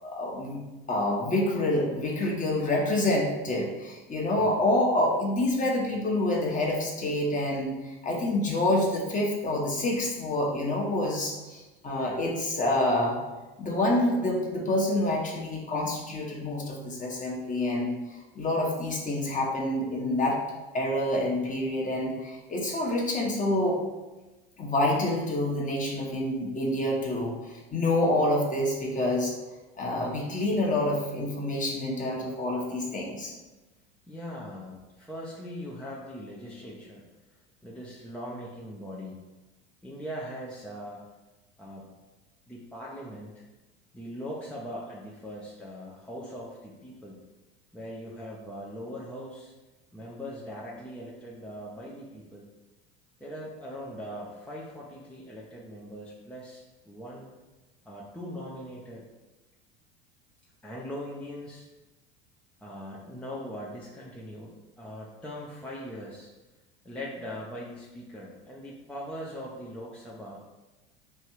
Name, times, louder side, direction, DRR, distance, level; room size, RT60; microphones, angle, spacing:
voice 1, 0.0-13.2 13.6-18.0 18.3-20.4 20.7-23.8 24.6-29.3 29.8-33.3, left 1 dB, 25° left, -1 dB, 1.1 m, -27 dB
voice 2, 34.1-37.0 37.6-39.2 39.8-41.0 41.6-41.9 42.5-43.4 43.9-47.2 47.7-49.5 49.9-52.5 53.2-57.3 57.8-59.1 60.6-61.7 62.6-66.3 66.8-70.4, equal, 5° left, -5 dB, 0.6 m, -40 dB
3.3 x 2.6 x 4.5 m, 1.1 s
hypercardioid pair, 80°, 30 cm